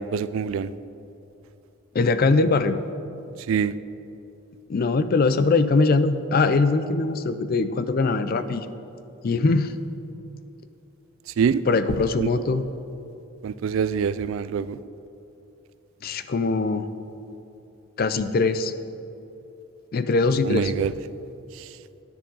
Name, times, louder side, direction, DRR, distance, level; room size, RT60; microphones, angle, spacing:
voice 1, 0.1-0.7 3.5-3.7 11.4-11.6 12.2-12.3 13.4-14.8 20.4-20.9, right 7 dB, 70° right, 16 dB, 0.3 m, -24 dB
voice 2, 1.9-2.8 4.7-8.7 9.2-9.7 11.7-12.6 16.0-16.9 18.0-18.7 19.9-20.7, left 3 dB, 45° left, 12 dB, 0.4 m, -21 dB
10.0 x 9.9 x 3.9 m, 2.8 s
head